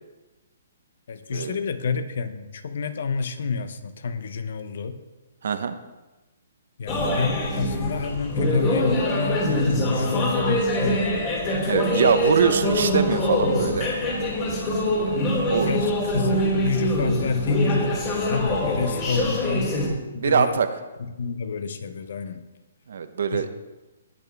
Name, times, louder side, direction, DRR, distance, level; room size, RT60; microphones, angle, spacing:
voice 1, 1.1-5.0 6.8-11.3 14.9-15.3 15.7-19.8 20.1-20.6 21.0-22.5 23.3-23.4, left 5 dB, 65° left, 10 dB, 1.0 m, -29 dB
voice 2, 5.4-5.7 11.7-13.9 14.9-15.7 20.2-20.7 22.9-23.5, right 6 dB, 70° right, 10 dB, 1.0 m, -23 dB
sound 1, 6.9-19.9, left 1 dB, 30° left, 3.1 m, -24 dB
19.0 x 7.0 x 3.5 m, 1.1 s
hypercardioid pair, 155°, 0 cm